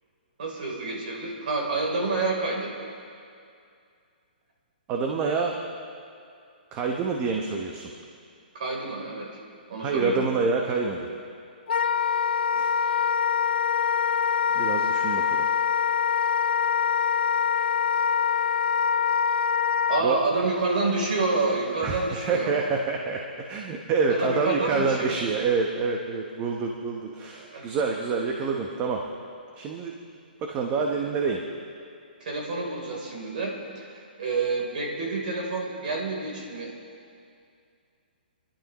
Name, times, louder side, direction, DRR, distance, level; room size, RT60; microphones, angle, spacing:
voice 1, 0.4-2.7 8.5-9.3 9.7-10.2 19.9-22.5 24.1-25.1 27.5-27.8 32.2-36.7, right 3 dB, 60° right, -1 dB, 3.5 m, -28 dB
voice 2, 4.9-5.6 6.7-7.9 9.8-11.1 12.5-12.7 14.5-15.5 20.0-20.2 21.8-29.0 29.6-29.9 30.4-31.4, right 4 dB, 25° right, 2 dB, 1.0 m, -27 dB
Wind instrument woodwind instrument, 11.7-20.0, left 7 dB, 85° left, 0.3 m, -24 dB
27.5 x 11.5 x 3.1 m, 2.4 s
hypercardioid pair, 150°, 5 cm